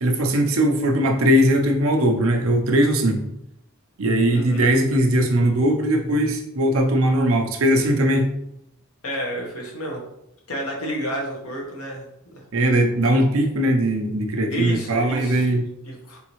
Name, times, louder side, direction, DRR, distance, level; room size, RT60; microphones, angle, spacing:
voice 1, 0.0-3.3 4.0-8.3 12.5-15.6, right 1 dB, 75° right, 3 dB, 0.7 m, -19 dB
voice 2, 4.3-4.7 9.0-10.0 10.5-12.1 12.3-12.7 14.5-15.5 15.8-16.2, equal, 85° left, -1 dB, 1.3 m, -30 dB
4.0 x 3.6 x 3.1 m, 0.81 s
head